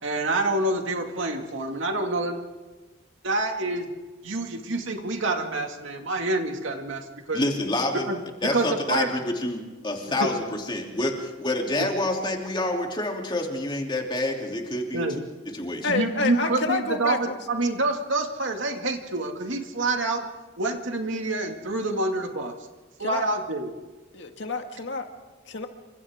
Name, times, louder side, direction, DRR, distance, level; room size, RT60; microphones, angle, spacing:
voice 1, 0.0-2.4 3.2-3.9 4.2-7.4 8.1-8.2 8.5-9.1 10.0-10.1 14.9-15.2 15.9-20.3 20.6-22.5 23.0-23.7, right 2 dB, 75° right, 3 dB, 2.3 m, -27 dB
voice 2, 7.3-8.1 8.4-11.1 11.4-15.1 15.5-15.9, left 1 dB, 25° left, 1 dB, 3.1 m, -27 dB
voice 3, 15.8-17.4 23.0-23.2 24.1-25.1 25.5-25.7, left 3 dB, 65° left, 4 dB, 2.0 m, -28 dB
28.0 x 25.5 x 3.7 m, 1.2 s
head